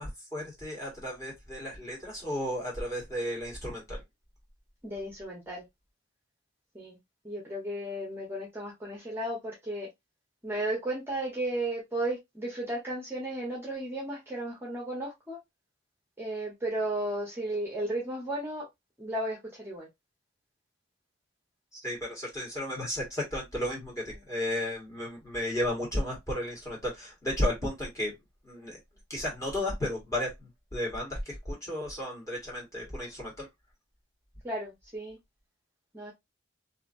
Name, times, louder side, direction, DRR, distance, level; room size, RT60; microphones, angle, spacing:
voice 1, 0.0-4.0 21.7-28.1 28.4-28.8 29.1-33.5, left 1 dB, 15° left, 1.6 m, -33 dB
voice 2, 4.8-5.6 6.7-7.0 7.2-9.9 10.4-15.4 16.2-18.7 19.0-19.9 34.4-35.2 35.9-36.1, right 1 dB, 10° right, 0.8 m, -34 dB
2.8 x 2.6 x 2.5 m
head